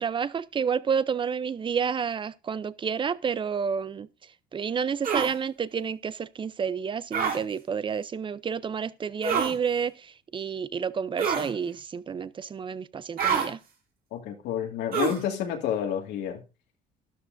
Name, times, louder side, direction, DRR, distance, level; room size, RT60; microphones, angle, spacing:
voice 1, 0.0-4.1 4.5-13.6, right 6 dB, 30° right, 0.5 m, -30 dB
sound 1, 5.0-5.3 7.1-7.4 9.2-9.5 11.2-11.5 13.2-13.5 14.9-15.2, right 6 dB, 60° right, 3.1 m, -26 dB
voice 2, 14.1-16.4, left 9 dB, 85° left, 2.1 m, -29 dB
12.5 x 11.5 x 2.6 m
cardioid pair, 110°, 17 cm